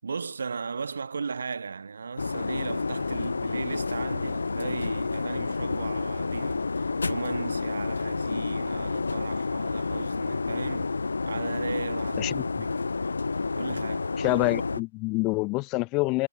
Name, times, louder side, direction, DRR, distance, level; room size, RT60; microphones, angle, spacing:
voice 1, 0.0-11.0 11.2-12.3 12.7-12.8 13.5-14.1, right 5 dB, 65° right, 5.0 m, -36 dB
sound 1, 2.2-14.8, left 4 dB, 75° left, 0.5 m, -30 dB
voice 2, 14.2-16.3, left 25 dB, 25° left, 1.0 m, -26 dB
figure-of-eight pair, 135°, 0 cm